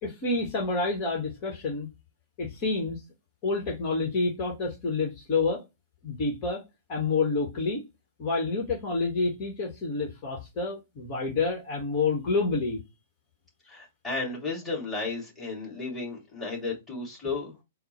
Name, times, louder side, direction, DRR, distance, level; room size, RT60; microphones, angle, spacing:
voice 1, 0.0-1.9 2.4-3.0 3.4-5.6 6.0-6.6 6.9-7.8 8.2-12.8, left 3 dB, 35° left, 1.2 m, -28 dB
voice 2, 13.6-17.5, left 3 dB, 5° left, 2.5 m, -33 dB
4.2 x 2.1 x 4.3 m
figure-of-eight pair, 110°, 0 cm